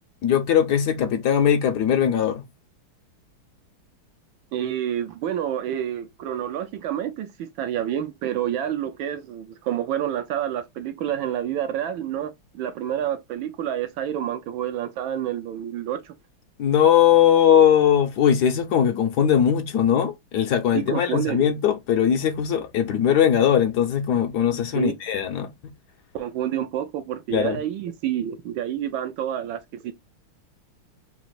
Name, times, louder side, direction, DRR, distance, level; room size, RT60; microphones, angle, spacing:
voice 1, 0.2-2.4 16.6-25.5 27.3-27.6, left 9 dB, 70° left, 1.0 m, -20 dB
voice 2, 4.5-16.1 20.7-21.4 24.7-24.9 26.1-29.9, right 10 dB, 80° right, 1.3 m, -28 dB
4.0 x 2.4 x 4.5 m
omnidirectional pair, 2.3 m